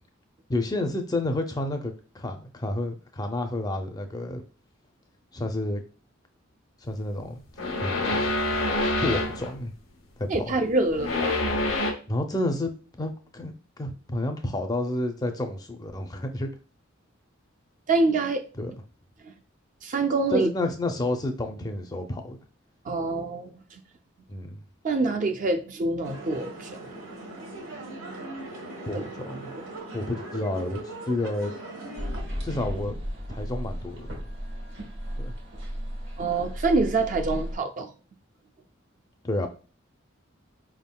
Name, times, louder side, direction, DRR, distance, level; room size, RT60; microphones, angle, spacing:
voice 1, 0.5-4.4 5.3-5.8 6.8-7.4 7.8-8.3 9.0-9.7 10.2-10.5 12.1-12.7 13.0-16.5 18.6-18.7 20.3-22.4 24.3-24.6 28.9-29.5 29.9-31.5 32.4-33.0 33.3-34.1 35.2-35.3 39.2-39.5, left 1 dB, 20° left, 0.4 m, -30 dB
sound 1, 7.6-9.5 10.9-11.9, left 2 dB, 85° left, 0.8 m, -26 dB
voice 2, 10.3-11.4 17.9-18.4 19.8-20.5 22.9-23.5 24.8-26.7 28.9-29.0 29.9-30.0 36.2-37.9, right 3 dB, 40° right, 0.4 m, -25 dB
sound 2, 26.0-32.2, right 2 dB, 90° right, 1.2 m, -39 dB
sound 3, 32.0-37.6, equal, 65° right, 1.2 m, -34 dB
4.6 x 3.6 x 2.2 m
head